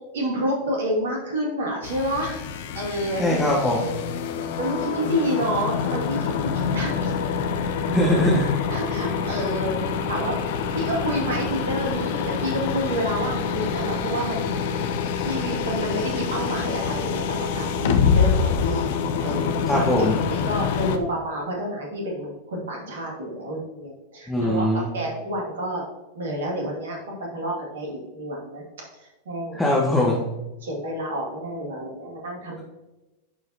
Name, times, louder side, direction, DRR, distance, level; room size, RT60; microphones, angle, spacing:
voice 1, 0.1-2.4 2.7-3.9 4.6-7.1 8.7-10.3 10.7-14.5 15.2-19.0 19.2-24.7 24.9-25.8 26.1-28.6 28.9-29.6 30.6-32.6, equal, 60° right, -1 dB, 2.2 m, -29 dB
sound 1, 1.8-21.0, left 6 dB, 50° left, 0.6 m, -26 dB
voice 2, 3.2-3.9 7.9-8.5 19.7-20.1 24.3-24.9 29.6-30.3, left 1 dB, 5° left, -4 dB, 1.2 m, -21 dB
10.5 x 4.8 x 2.8 m, 1.1 s
figure-of-eight pair, 90°, 0 cm